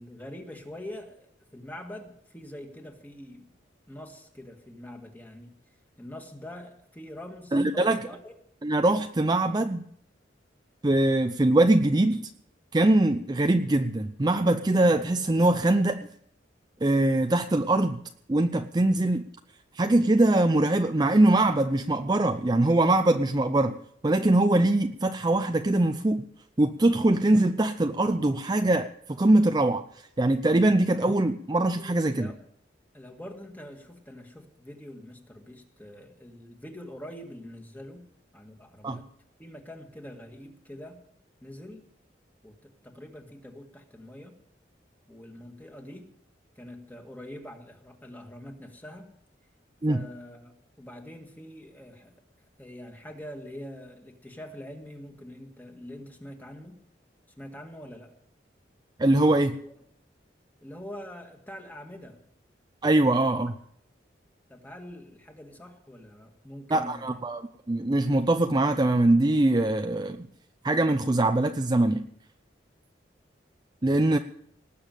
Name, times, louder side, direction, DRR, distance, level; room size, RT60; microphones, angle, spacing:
voice 1, 0.0-3.5 3.9-5.6 6.0-8.3 32.1-32.4 32.9-38.1 38.3-39.1 39.4-41.0 41.4-41.9 42.4-44.4 45.1-46.1 46.6-49.1 49.9-52.1 52.6-56.8 57.4-58.1 59.6-59.7 60.6-62.2 64.5-67.2, left 1 dB, 10° left, 3 dB, 1.9 m, -44 dB
voice 2, 7.5-8.0 8.6-9.8 10.8-12.2 12.7-16.1 16.8-18.0 18.3-19.2 19.7-23.8 24.0-26.2 26.6-29.9 30.2-32.3 38.8-39.0 49.8-50.0 59.0-59.6 62.8-63.5 66.7-70.3 70.6-72.0 73.8-74.2, right 2 dB, 25° right, 7 dB, 0.5 m, -22 dB
19.0 x 6.9 x 9.1 m, 0.69 s
head